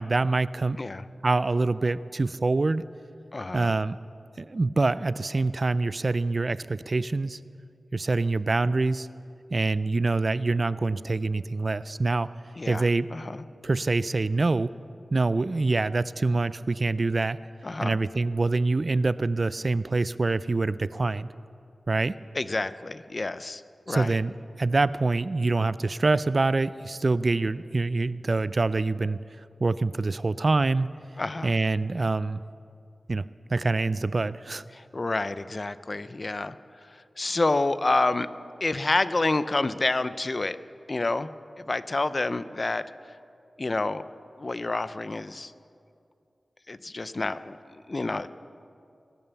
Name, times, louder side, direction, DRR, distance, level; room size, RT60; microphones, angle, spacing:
voice 1, 0.0-0.8 1.2-2.8 3.5-4.0 4.4-7.4 7.9-9.1 9.5-12.3 12.7-13.1 13.6-14.8 15.1-17.4 17.8-21.3 21.9-22.2 23.9-24.3 24.6-29.2 29.6-31.0 31.4-32.4 33.1-33.2 33.5-34.6, right 3 dB, 50° right, 17 dB, 0.3 m, -25 dB
voice 2, 3.3-3.8 12.6-12.9 13.1-13.4 17.6-18.0 22.3-23.6 23.9-24.2 31.2-31.5 34.7-36.6 36.8-38.3 38.6-40.6 40.9-41.3 41.6-42.8 43.6-44.0 44.4-45.5 46.7-48.3, left 2 dB, 45° left, 14 dB, 0.5 m, -28 dB
21.0 x 8.9 x 7.0 m, 2.5 s
wide cardioid pair, 70°, 0 cm